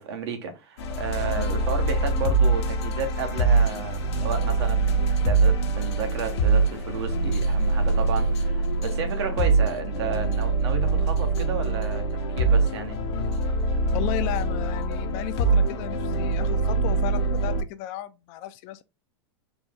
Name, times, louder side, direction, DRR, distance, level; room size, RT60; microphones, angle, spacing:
voice 1, 0.0-12.0 12.4-13.0, right 5 dB, 70° right, 1.1 m, -32 dB
sound 1, 0.8-17.6, right 3 dB, 75° left, 0.8 m, -24 dB
sound 2, 2.5-8.4, right 6 dB, 20° right, 0.5 m, -45 dB
voice 2, 13.9-18.8, left 13 dB, 45° left, 0.4 m, -34 dB
4.0 x 2.3 x 3.5 m
supercardioid pair, 135°, 14 cm